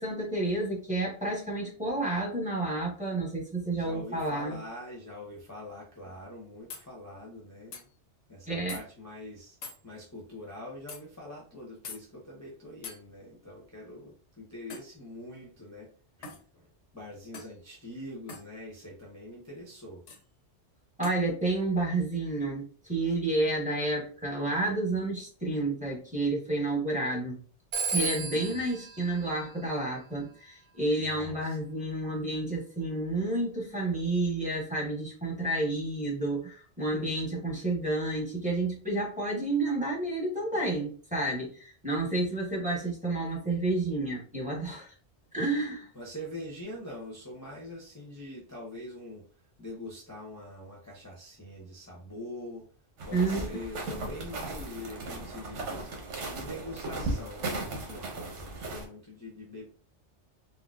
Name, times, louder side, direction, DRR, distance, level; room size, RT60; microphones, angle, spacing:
voice 1, 0.0-4.6 8.5-8.8 21.0-27.4 27.9-44.9 45.3-45.9 53.1-53.6, right 2 dB, 5° right, -4 dB, 0.9 m, -30 dB
voice 2, 3.7-7.8 8.3-9.6 9.8-15.9 16.2-20.0 28.3-28.6 31.0-31.6 45.9-49.2 49.6-52.6 53.0-56.0 56.3-59.6, left 1 dB, 15° left, -5 dB, 0.6 m, -44 dB
sound 1, 6.7-6.9 7.7-7.9 8.7-8.8 9.6-9.8 10.9-11.0 11.8-12.0 12.8-13.0 14.7-14.9 16.2-16.4 17.3-17.6 18.3-18.5 20.1-20.2 21.0-21.2, left 4 dB, 85° left, 1.0 m, -43 dB
Telephone, 27.7-30.2, right 3 dB, 65° right, 0.8 m, -35 dB
sound 2, 53.0-58.9, right 2 dB, 85° right, 1.1 m, -36 dB
4.0 x 2.0 x 2.3 m, 0.40 s
omnidirectional pair, 1.2 m